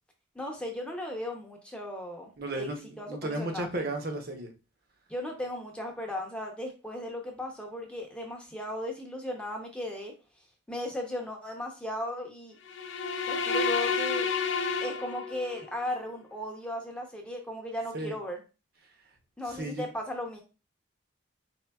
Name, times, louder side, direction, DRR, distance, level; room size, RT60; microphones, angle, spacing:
voice 1, 0.3-2.7 3.0-3.8 5.1-10.1 10.7-12.6 13.3-14.3 14.8-18.4 19.4-20.4, left 1 dB, 5° left, 1 dB, 0.7 m, -36 dB
voice 2, 2.4-4.5 17.9-18.1 18.8-19.1 19.4-19.9, right 1 dB, 50° right, 4 dB, 0.8 m, -34 dB
sound 1, 12.7-15.7, left 5 dB, 65° left, 0.5 m, -30 dB
4.4 x 3.2 x 2.3 m, 0.31 s
head